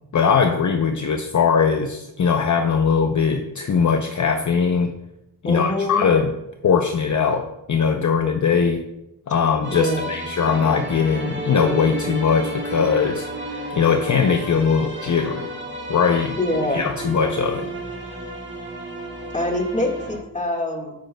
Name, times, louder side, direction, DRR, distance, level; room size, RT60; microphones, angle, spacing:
voice 1, 0.1-4.9 5.4-6.3 6.6-8.8 9.3-13.2 13.7-15.5 15.9-16.4 16.7-17.7, left 6 dB, 45° left, 5 dB, 0.6 m, -20 dB
voice 2, 5.4-6.1 9.7-10.1 16.4-16.8 19.3-20.9, left 1 dB, 20° left, 1 dB, 1.6 m, -24 dB
sound 1, 9.6-20.2, right 1 dB, 30° right, 1.6 m, -32 dB
9.3 x 8.9 x 2.2 m, 0.88 s
wide cardioid pair, 80°, 40 cm